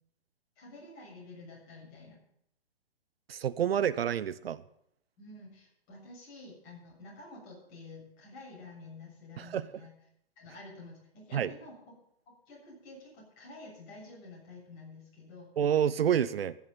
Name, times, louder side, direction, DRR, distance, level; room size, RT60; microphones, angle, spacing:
voice 1, 0.6-2.2 5.2-9.9 10.4-11.7 12.5-15.5, left 2 dB, 30° left, -3 dB, 7.1 m, -49 dB
voice 2, 3.3-4.6 9.4-9.7 11.3-11.5 15.6-16.5, right 9 dB, 70° right, 15 dB, 0.8 m, -28 dB
14.5 x 7.2 x 8.9 m, 0.74 s
hypercardioid pair, 145°, 31 cm